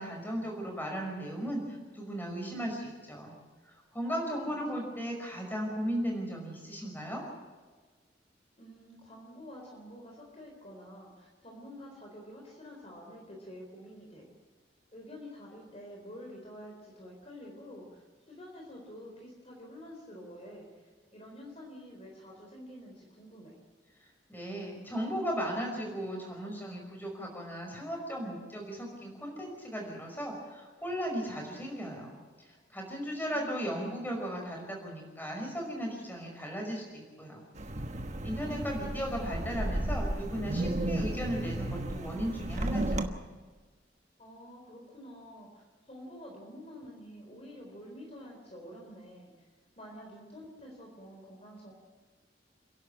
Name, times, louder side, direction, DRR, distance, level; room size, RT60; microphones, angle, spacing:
voice 1, 0.0-3.3 3.7-7.2 24.3-32.1 32.7-37.4 38.2-43.2, equal, 10° left, 0 dB, 5.5 m, -36 dB
voice 2, 4.4-4.9 8.6-14.3 14.9-23.5 33.3-33.9 44.2-49.3 49.8-51.7, equal, 35° left, 0 dB, 4.0 m, -48 dB
Wind, 37.6-43.1, right 1 dB, 40° right, 1.3 m, -33 dB
30.0 x 11.5 x 8.8 m, 1.4 s
head